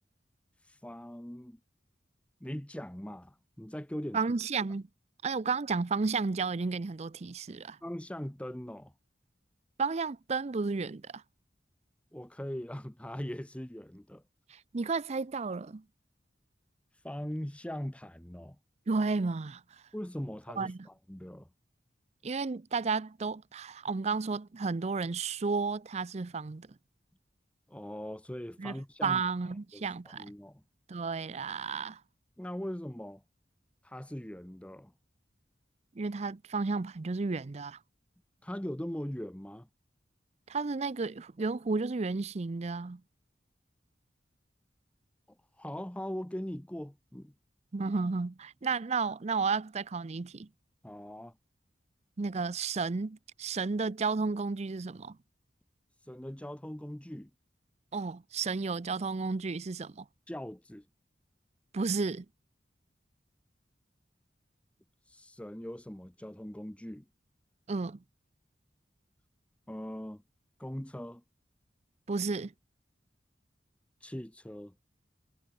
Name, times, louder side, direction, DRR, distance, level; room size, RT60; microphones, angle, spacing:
voice 1, 0.7-1.6 2.4-4.2 7.8-8.9 12.1-14.2 17.0-18.6 19.9-21.5 27.7-29.2 29.7-30.6 32.4-33.2 33.8-34.9 38.4-39.7 45.6-47.3 50.8-51.3 56.1-57.3 60.3-60.8 65.1-67.0 69.7-70.2 70.6-71.2 74.0-74.7, equal, 5° left, 0.8 m, -40 dB
voice 2, 4.1-4.9 5.2-7.8 9.8-11.2 14.5-15.8 18.9-19.6 20.6-20.8 22.2-26.7 28.6-28.8 29.0-30.3 30.9-32.0 36.0-37.8 40.5-43.0 47.7-50.5 52.2-55.2 57.9-60.0 61.7-62.3 67.7-68.0 72.1-72.5, right 4 dB, 40° right, 0.5 m, -32 dB
head